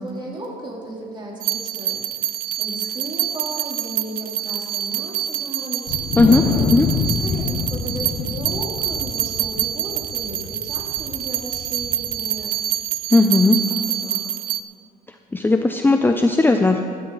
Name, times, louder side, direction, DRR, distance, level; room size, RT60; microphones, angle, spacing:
voice 1, 0.0-6.1 6.4-6.8 7.2-12.6 13.5-14.3, right 1 dB, 30° right, -3 dB, 3.5 m, -35 dB
sound 1, 1.4-14.6, right 11 dB, 60° right, 0.5 m, -26 dB
Wind, 5.9-12.4, left 6 dB, 65° left, 1.1 m, -27 dB
voice 2, 13.1-13.6 15.3-16.8, left 3 dB, 10° left, 5 dB, 0.6 m, -16 dB
15.5 x 13.0 x 4.1 m, 2.1 s
cardioid pair, 110°, 17 cm